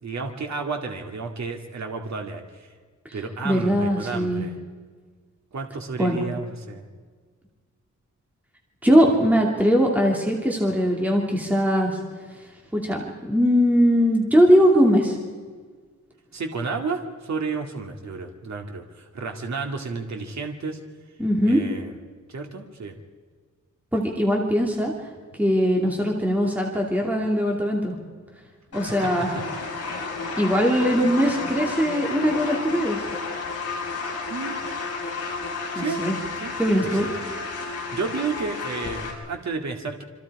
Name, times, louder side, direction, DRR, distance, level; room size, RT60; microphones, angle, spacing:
voice 1, 0.0-2.7 3.1-4.6 5.5-6.8 16.3-20.8 21.5-21.9 22.3-23.0 28.8-29.1 34.3-34.6 35.7-36.0 36.4-36.5 36.8-37.2 37.7-40.0, right 4 dB, 60° right, 3 dB, 2.3 m, -31 dB
voice 2, 3.4-4.4 6.0-6.2 8.8-12.0 12.7-13.0 13.3-15.2 21.2-21.6 23.9-24.9 25.4-28.0 28.7-29.3 30.4-33.1 35.8-36.1 36.6-37.1, equal, 5° right, -1 dB, 2.6 m, -20 dB
sound 1, 28.7-39.1, left 4 dB, 50° left, 5.9 m, -32 dB
27.5 x 25.5 x 4.9 m, 1.5 s
wide cardioid pair, 175°, 31 cm